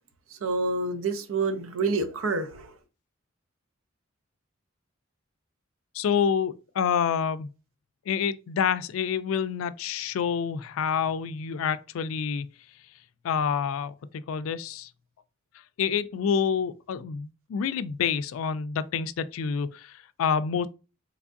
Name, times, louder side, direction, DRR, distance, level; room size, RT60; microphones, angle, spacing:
voice 1, 0.3-2.7, right 3 dB, 90° right, 0.6 m, -28 dB
voice 2, 5.9-7.5 8.1-12.5 13.2-14.9 15.8-20.7, left 7 dB, 90° left, 0.3 m, -28 dB
3.4 x 3.2 x 2.5 m
head